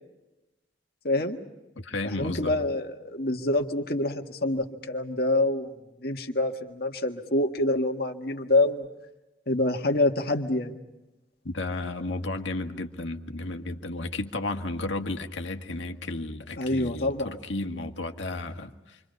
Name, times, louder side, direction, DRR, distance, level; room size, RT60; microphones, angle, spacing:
voice 1, 1.0-1.4 2.0-5.7 6.0-8.9 9.5-10.8 16.6-17.4, left 2 dB, 55° left, 4 dB, 1.7 m, -26 dB
voice 2, 1.8-2.5 11.4-19.0, left 2 dB, 85° left, 4 dB, 1.8 m, -33 dB
28.0 x 25.0 x 5.3 m, 0.99 s
head